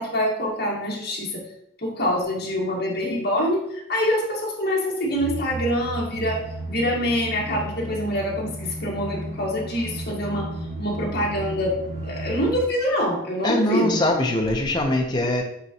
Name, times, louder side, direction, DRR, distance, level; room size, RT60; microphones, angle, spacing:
voice 1, 0.0-1.5 1.8-6.4 6.7-10.5 10.8-14.0, equal, 55° left, -3 dB, 1.8 m, -25 dB
sound 1, 5.1-12.6, right 1 dB, 45° right, 2.1 m, -34 dB
voice 2, 13.4-15.4, left 1 dB, 20° left, 0 dB, 0.9 m, -22 dB
8.6 x 3.8 x 3.0 m, 0.74 s
head